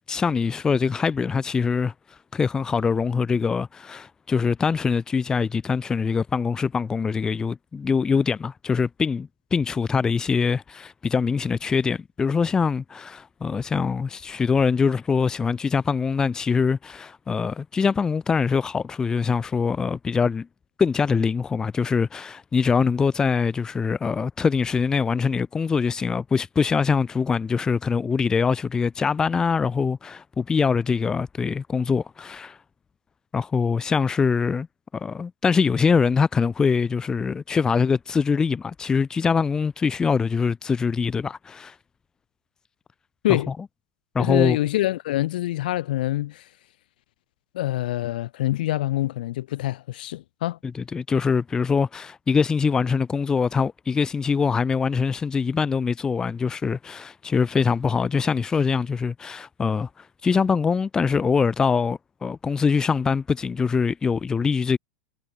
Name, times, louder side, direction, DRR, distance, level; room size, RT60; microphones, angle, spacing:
voice 1, 0.0-1.9 2.3-20.5 20.8-32.6 33.3-34.7 34.9-41.7 43.3-43.4 44.1-44.6 50.7-59.9 60.2-64.8, left 5 dB, 15° left, 0.7 m, -23 dB
voice 2, 44.2-46.4 47.5-50.6, left 15 dB, 75° left, 1.2 m, -25 dB
supercardioid pair, 145°, 5 cm